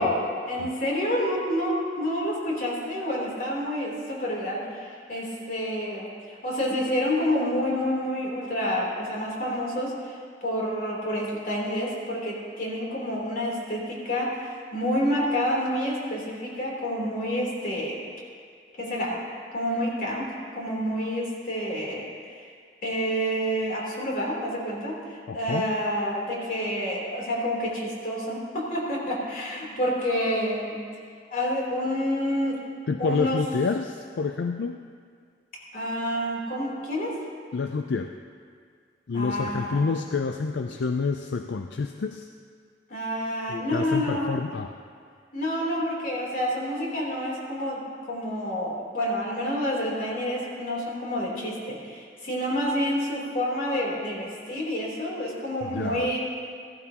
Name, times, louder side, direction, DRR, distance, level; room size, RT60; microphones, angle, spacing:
voice 1, 0.0-18.0 18.8-19.2 19.5-22.4 22.8-30.8 31.3-32.6 33.0-33.4 35.7-37.2 39.1-39.9 42.9-44.3 45.3-56.2, equal, 50° left, -4 dB, 3.4 m, -28 dB
voice 2, 25.3-25.7 32.9-34.8 37.5-38.1 39.1-42.3 43.5-44.7 55.6-56.1, left 4 dB, 80° left, 6 dB, 0.4 m, -28 dB
16.0 x 14.5 x 2.9 m, 2.1 s
head